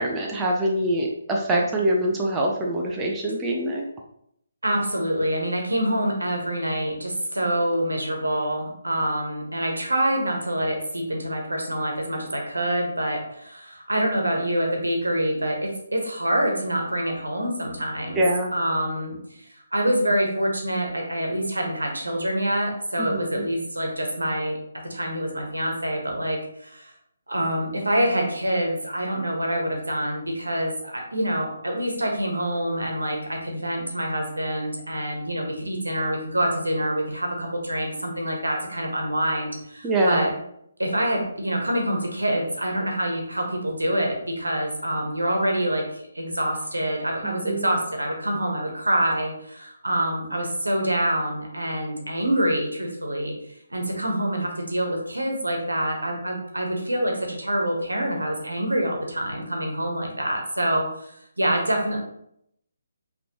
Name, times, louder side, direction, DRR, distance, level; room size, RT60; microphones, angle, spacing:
voice 1, 0.0-3.8 18.1-18.5 23.0-23.5 39.8-40.3 47.2-47.7, right 1 dB, 15° right, -2 dB, 0.6 m, -24 dB
voice 2, 4.6-18.2 18.5-19.4 19.7-24.6 24.8-26.9 27.3-40.3 40.8-53.3 53.7-61.1 61.4-62.0, right 1 dB, 80° right, 1 dB, 1.2 m, -26 dB
5.1 x 3.1 x 3.0 m, 0.72 s
figure-of-eight pair, 140°, 0 cm